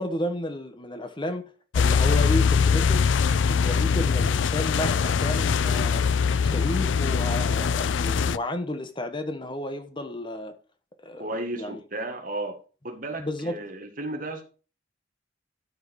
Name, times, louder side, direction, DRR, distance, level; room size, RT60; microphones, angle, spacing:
voice 1, 0.0-1.4 1.7-3.1 3.4-6.0 6.4-10.5 11.0-11.3 11.5-11.8 13.2-13.6, left 1 dB, 25° left, 1.1 m, -32 dB
sound 1, 1.7-8.4, left 6 dB, 85° left, 0.4 m, -22 dB
voice 2, 11.2-14.4, right 2 dB, 45° right, 1.8 m, -34 dB
12.5 x 4.9 x 4.7 m
head